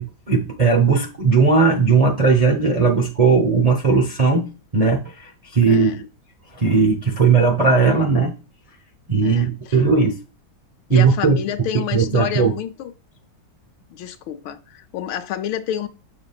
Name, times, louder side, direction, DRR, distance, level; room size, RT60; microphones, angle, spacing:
voice 1, 0.0-4.5 4.7-6.0 6.5-8.4 9.1-10.2 10.9-11.4 11.7-12.5, right 4 dB, 40° right, 0.5 m, -17 dB
voice 2, 9.2-9.8 10.9-12.9 13.9-15.9, left 10 dB, 90° left, 1.5 m, -29 dB
6.8 x 6.1 x 2.3 m
omnidirectional pair, 2.1 m